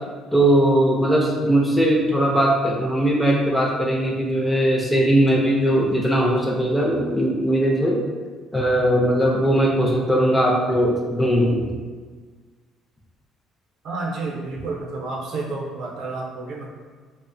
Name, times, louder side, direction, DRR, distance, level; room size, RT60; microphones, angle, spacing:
voice 1, 0.3-8.0 8.5-11.6, right 1 dB, 5° left, -2 dB, 0.4 m, -19 dB
voice 2, 13.8-16.7, right 3 dB, 60° right, -2 dB, 0.5 m, -30 dB
2.7 x 2.0 x 2.5 m, 1.5 s
cardioid pair, 130°, 0 cm